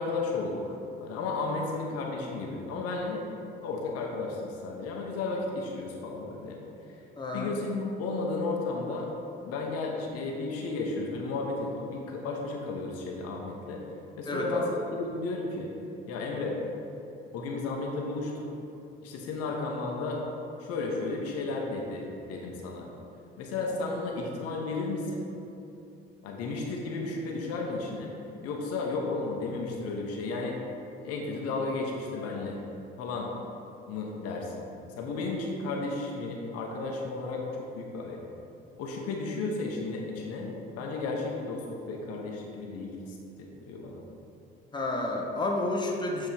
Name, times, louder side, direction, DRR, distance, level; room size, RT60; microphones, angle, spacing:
voice 1, 0.0-3.2 3.6-6.6 7.3-9.1 9.4-13.8 14.2-15.7 16.1-16.6 17.3-18.5 19.0-20.2 20.6-22.9 23.4-25.3 26.2-28.1 28.4-30.6 31.0-32.6 33.0-33.3 33.9-38.3 38.8-44.0, left 3 dB, 55° left, 0 dB, 1.0 m, -33 dB
voice 2, 7.2-7.5 14.3-14.7 44.7-46.3, left 2 dB, 15° left, 0 dB, 0.9 m, -30 dB
7.8 x 3.8 x 4.7 m, 2.8 s
figure-of-eight pair, 50°, 29 cm